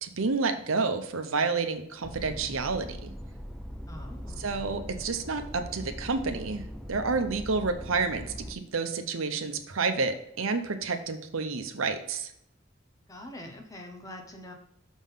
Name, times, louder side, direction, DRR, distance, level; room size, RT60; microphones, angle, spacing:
voice 1, 0.0-3.1 4.4-6.6 6.9-12.3, right 4 dB, 90° right, 8 dB, 0.8 m, -29 dB
sound 1, 2.0-8.5, equal, ahead, 0.4 m, -41 dB
voice 2, 3.9-4.4 13.1-14.5, left 1 dB, 15° left, 2 dB, 0.9 m, -44 dB
6.1 x 3.7 x 5.5 m, 0.77 s
head